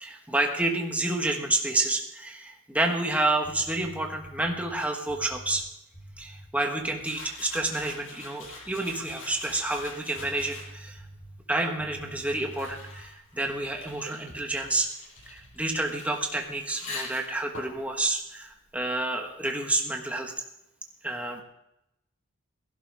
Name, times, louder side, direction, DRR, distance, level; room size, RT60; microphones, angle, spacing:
voice 1, 0.0-5.6 6.2-11.0 11.5-14.9 15.3-20.3 21.0-21.4, right 2 dB, 5° right, 2 dB, 1.4 m, -29 dB
sound 1, 3.4-8.1 8.4-9.0 9.3-14.0 14.3-14.9 15.2-15.8, right 1 dB, 45° left, 3.3 m, -49 dB
sound 2, 7.0-11.0 11.8-19.2, left 3 dB, 65° left, 6.1 m, -44 dB
21.5 x 11.5 x 3.6 m, 0.86 s
head